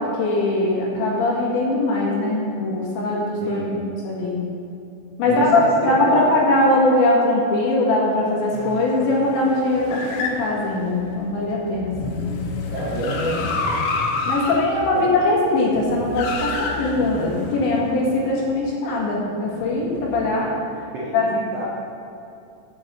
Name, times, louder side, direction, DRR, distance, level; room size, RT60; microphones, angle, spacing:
voice 1, 0.0-3.6 4.0-4.4 5.2-12.2 14.3-20.5 21.1-21.3, left 2 dB, 70° left, -3 dB, 3.9 m, -21 dB
voice 2, 3.4-3.8 5.2-5.7 6.1-6.6 12.7-13.4 14.9-15.1 20.9-21.7, right 1 dB, 70° right, -7 dB, 1.4 m, -28 dB
sound 1, 8.5-18.5 19.5-20.4, left 3 dB, 90° left, 3.7 m, -29 dB
8.8 x 6.9 x 7.7 m, 2.7 s
omnidirectional pair, 5.8 m